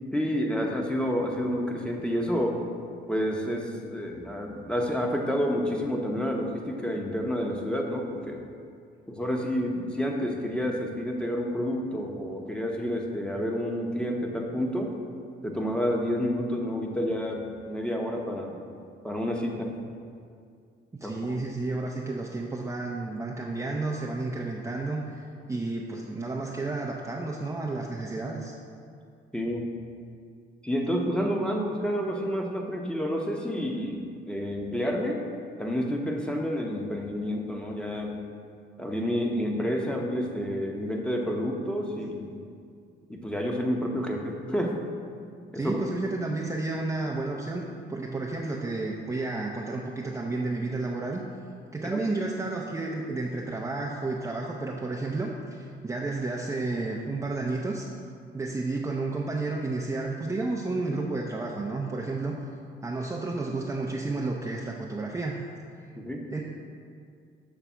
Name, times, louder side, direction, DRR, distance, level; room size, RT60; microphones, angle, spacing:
voice 1, 0.1-2.6 3.1-8.4 9.1-14.9 15.4-18.6 19.0-19.7 21.0-21.4 29.3-29.7 30.6-35.2 35.6-38.2 38.8-42.4 43.1-44.8 45.5-45.8 51.8-52.0 66.0-66.2, equal, 5° left, 1 dB, 0.9 m, -29 dB
voice 2, 20.9-25.2 25.5-28.5 45.5-47.6 47.9-51.2 51.7-57.9 58.3-62.4 62.8-65.4 66.3-66.4, right 3 dB, 15° right, -3 dB, 0.5 m, -31 dB
7.0 x 3.3 x 6.1 m, 2.3 s
cardioid pair, 90°, 20 cm